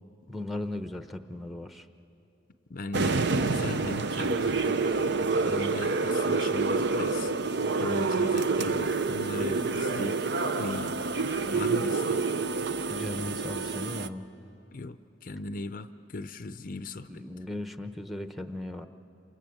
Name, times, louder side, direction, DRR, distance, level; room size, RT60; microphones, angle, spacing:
voice 1, 0.3-1.9 12.9-14.3 17.1-18.9, left 1 dB, ahead, 8 dB, 0.9 m, -37 dB
voice 2, 2.7-4.8 5.4-7.3 7.6-10.2 10.6-11.0 11.5-12.2 14.7-17.2, left 2 dB, 45° left, 11 dB, 0.6 m, -38 dB
sound 1, 2.9-14.1, right 4 dB, 60° right, 0.7 m, -28 dB
28.5 x 26.5 x 7.8 m, 2.8 s
head